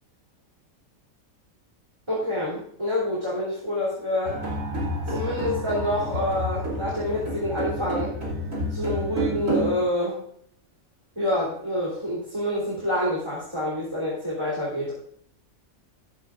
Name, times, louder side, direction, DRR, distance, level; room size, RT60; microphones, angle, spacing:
voice 1, 2.1-4.4 5.1-8.1 8.7-10.2 11.2-14.9, left 1 dB, 20° right, -6 dB, 3.1 m, -27 dB
sound 1, 4.2-9.7, equal, 65° right, 3.4 m, -29 dB
14.0 x 11.5 x 2.5 m, 0.63 s
omnidirectional pair, 1.4 m